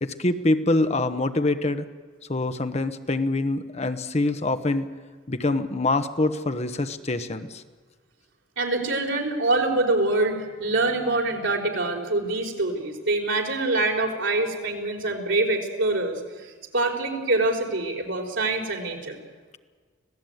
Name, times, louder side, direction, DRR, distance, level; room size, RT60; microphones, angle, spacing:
voice 1, 0.0-1.8 2.3-4.9 5.3-7.6, left 2 dB, 35° left, 9 dB, 1.1 m, -25 dB
voice 2, 8.6-19.2, right 2 dB, 85° right, 1 dB, 4.5 m, -25 dB
25.5 x 17.0 x 9.3 m, 1.5 s
head